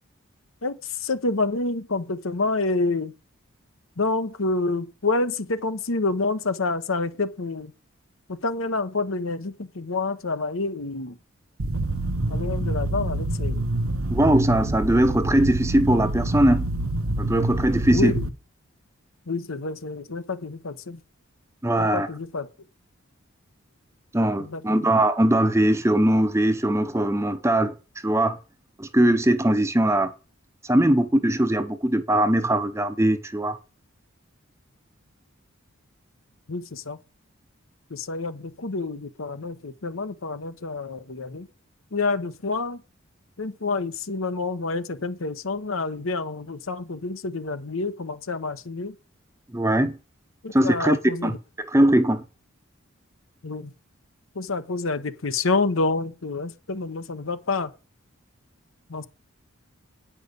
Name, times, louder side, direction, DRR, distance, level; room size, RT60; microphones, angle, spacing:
voice 1, 0.6-3.1 4.0-7.7 8.3-11.2 12.3-13.6 17.9-18.3 19.3-21.0 21.8-22.5 24.4-24.6 36.5-37.0 37.9-41.5 41.9-42.8 43.4-48.9 50.4-51.4 53.4-53.7 54.3-57.7 58.9-59.0, left 3 dB, 75° left, 1.0 m, -28 dB
sound 1, 11.6-18.3, right 2 dB, 85° right, 0.9 m, -26 dB
voice 2, 14.1-16.6 17.2-18.1 21.6-22.1 24.1-27.7 28.0-28.4 28.8-30.1 30.7-33.6 49.5-50.0 50.5-51.0 51.2-52.2, right 1 dB, 15° right, 0.8 m, -21 dB
9.5 x 5.9 x 6.8 m
head